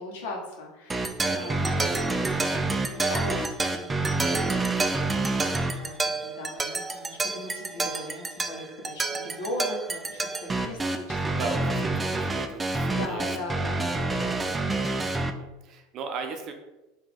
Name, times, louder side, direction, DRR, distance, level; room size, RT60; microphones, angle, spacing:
voice 1, 0.0-4.5 5.7-11.2 11.6-11.8 12.4-14.7, left 1 dB, 80° left, 0 dB, 1.3 m, -39 dB
sound 1, 0.9-15.3, right 3 dB, 10° right, 0.3 m, -28 dB
voice 2, 1.2-1.5 7.8-7.9 11.2-11.7 12.0-13.3 13.6-14.0 15.2-16.5, right 5 dB, 40° right, 5 dB, 0.7 m, -37 dB
5.0 x 2.9 x 3.7 m, 1.0 s
supercardioid pair, 140°, 0 cm